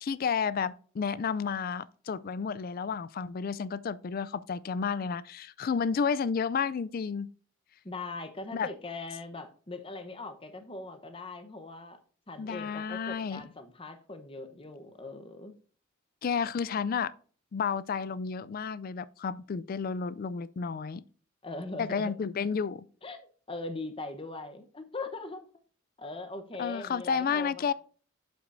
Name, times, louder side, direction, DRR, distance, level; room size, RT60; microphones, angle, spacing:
voice 1, 0.0-7.3 8.5-8.7 12.4-13.4 16.2-17.1 17.5-21.0 21.8-22.8 26.6-27.7, left 6 dB, 45° left, 0.3 m, -31 dB
voice 2, 7.8-12.0 12.3-15.5 21.4-22.1 23.0-25.5 26.0-27.7, left 3 dB, 25° left, 0.9 m, -40 dB
8.2 x 7.9 x 2.6 m
head